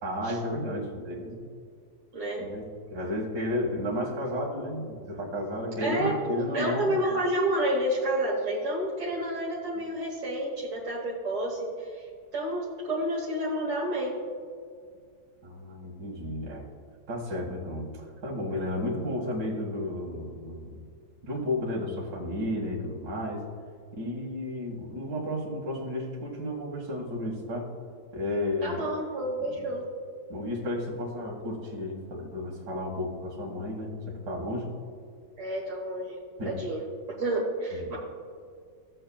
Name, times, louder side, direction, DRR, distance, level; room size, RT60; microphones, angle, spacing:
voice 1, 0.0-1.4 2.4-7.2 9.8-9.9 15.4-16.6 17.1-20.8 21.2-23.5 23.9-27.7 28.1-28.9 29.6-29.7 30.3-34.7 36.4-36.6 37.7-38.0, left 1 dB, 60° right, -3 dB, 2.3 m, -33 dB
voice 2, 2.1-2.5 5.8-6.1 6.5-12.1 12.3-14.2 28.6-29.8 35.4-36.2 36.4-36.8 37.2-38.0, right 1 dB, 45° right, -5 dB, 1.5 m, -29 dB
15.5 x 7.8 x 2.3 m, 2.2 s
omnidirectional pair, 2.0 m